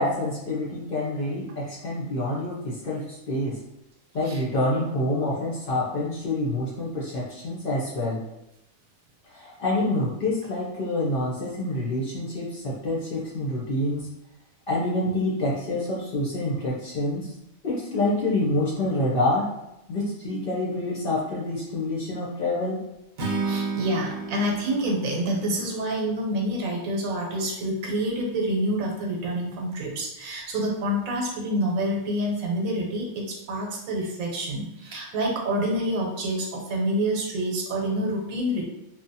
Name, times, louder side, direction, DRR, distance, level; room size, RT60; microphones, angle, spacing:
voice 1, 0.0-3.6 4.1-8.2 9.3-14.1 14.7-17.3 17.6-19.5 19.9-22.8, left 1 dB, 55° left, -5 dB, 0.6 m, -27 dB
Acoustic guitar / Strum, 23.2-26.4, right 4 dB, 60° right, 0.7 m, -32 dB
voice 2, 23.4-38.6, right 1 dB, 85° right, 0 dB, 1.1 m, -27 dB
2.7 x 2.1 x 2.6 m, 0.89 s
omnidirectional pair, 1.4 m